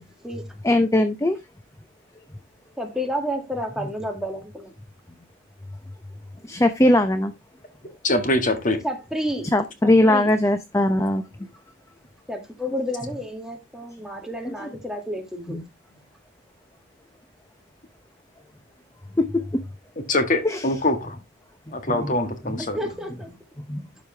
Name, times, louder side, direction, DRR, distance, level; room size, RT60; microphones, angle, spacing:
voice 1, 0.6-1.4 6.4-7.3 9.5-11.2 15.5-15.6 19.2-19.4 20.4-20.6 21.9-22.1 23.7-23.8, left 1 dB, 15° left, 0.6 m, -20 dB
voice 2, 2.8-4.7 8.8-9.5 9.8-10.3 12.3-15.6 22.7-23.3, equal, 5° right, 2.0 m, -30 dB
voice 3, 8.0-8.8 20.1-21.2 21.7-22.8, left 2 dB, 40° left, 1.6 m, -23 dB
12.0 x 5.1 x 3.3 m
head